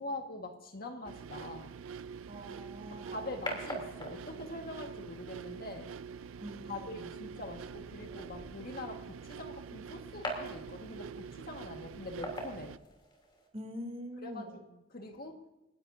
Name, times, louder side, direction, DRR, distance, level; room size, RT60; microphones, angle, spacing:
voice 1, 0.0-1.7 2.9-5.9 6.6-12.8 14.2-14.6 14.9-15.4, left 2 dB, 50° left, 4 dB, 1.7 m, -44 dB
sound 1, 1.0-12.8, right 6 dB, 80° right, 0.4 m, -46 dB
voice 2, 2.3-3.3 6.4-7.0 13.5-14.6, equal, 30° right, 3 dB, 3.0 m, -44 dB
sound 2, 2.5-13.5, equal, 25° left, 3.1 m, -46 dB
30.0 x 12.0 x 2.7 m, 1.0 s
head